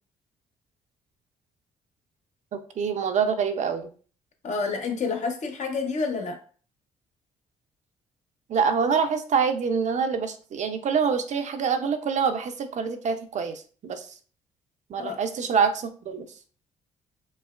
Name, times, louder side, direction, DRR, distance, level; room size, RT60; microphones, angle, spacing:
voice 1, 2.5-3.9 8.5-14.1 14.9-16.3, right 6 dB, 55° right, 0.7 m, -26 dB
voice 2, 4.4-6.4 15.0-15.2, left 4 dB, 55° left, 1.0 m, -29 dB
5.3 x 2.0 x 2.4 m
hypercardioid pair, 55°, 15 cm